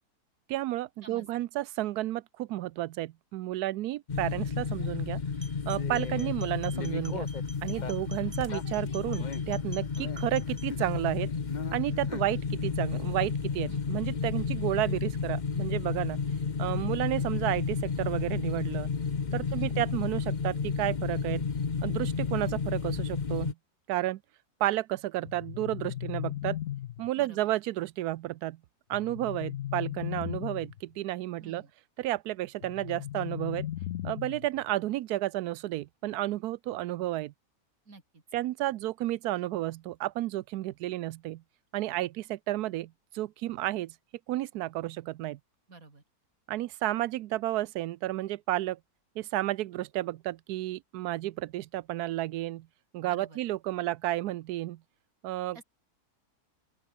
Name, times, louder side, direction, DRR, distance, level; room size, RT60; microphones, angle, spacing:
voice 1, 0.5-5.2 5.7-7.3 7.6-11.3 11.7-16.2 16.6-18.9 19.3-21.5 21.8-23.5 23.9-24.2 24.6-26.6 27.0-28.6 28.9-31.6 32.0-33.7 34.0-37.3 38.3-41.4 41.7-43.9 44.3-45.4 46.5-48.8 49.2-52.7 52.9-54.8 55.2-55.6, right 15 dB, 85° right, 1.1 m, -32 dB
voice 2, 1.0-1.5 13.7-13.9 19.5-19.7 27.1-27.4 31.4-31.7 37.9-38.2 45.7-46.0 53.0-53.4 55.5-55.6, right 3 dB, 65° right, 4.4 m, -50 dB
sound 1, 4.1-23.5, left 5 dB, 35° left, 1.0 m, -32 dB
sound 2, 5.3-10.7, right 1 dB, 15° right, 2.8 m, -51 dB
sound 3, 25.2-27.2 28.9-30.8 32.6-34.6, left 12 dB, 65° left, 0.9 m, -37 dB
open air
omnidirectional pair, 1.6 m